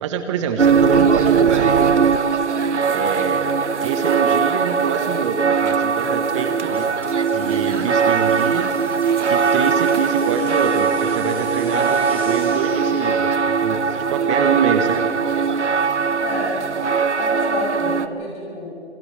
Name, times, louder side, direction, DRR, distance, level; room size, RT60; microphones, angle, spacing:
voice 1, 0.0-2.0 2.8-3.5 3.8-6.9 7.3-8.7 9.3-15.1, right 6 dB, 25° right, 7 dB, 1.2 m, -25 dB
sound 1, 0.6-18.1, right 6 dB, 85° right, 1.0 m, -20 dB
sound 2, 6.6-13.6, right 2 dB, 5° right, 6.4 m, -41 dB
voice 2, 16.2-16.6 17.2-18.7, left 3 dB, 20° left, -4 dB, 6.7 m, -28 dB
28.0 x 27.0 x 3.4 m, 2.5 s
figure-of-eight pair, 140°, 34 cm